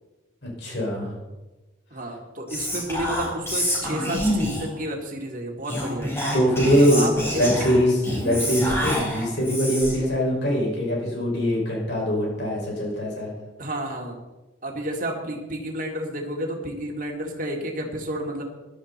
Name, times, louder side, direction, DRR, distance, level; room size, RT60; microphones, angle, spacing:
voice 1, 0.4-1.1 6.3-7.1 7.4-13.3, equal, 55° left, -2 dB, 5.6 m, -22 dB
voice 2, 1.9-6.1 6.7-7.5 13.6-14.2 14.6-18.4, right 1 dB, 40° right, 1 dB, 2.3 m, -31 dB
Whispering, 2.5-4.8 5.6-10.1, left 1 dB, 10° left, 4.5 m, -27 dB
16.5 x 12.0 x 4.3 m, 1.1 s
head